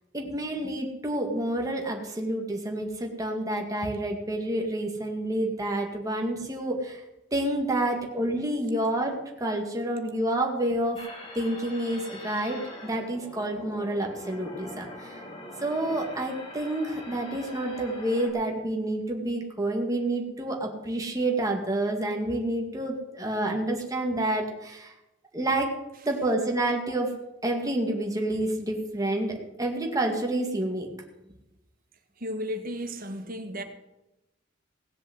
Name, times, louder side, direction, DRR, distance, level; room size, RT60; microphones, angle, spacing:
voice 1, 0.1-7.0 7.3-11.0 11.3-15.2 15.6-24.9 25.3-25.8 26.1-27.1 27.4-30.9, right 1 dB, 20° right, 2.2 m, -29 dB
sound 1, 11.0-18.3, left 1 dB, 30° left, 3.1 m, -43 dB
voice 2, 32.2-33.6, equal, 50° right, 1.7 m, -34 dB
17.5 x 7.6 x 8.0 m
head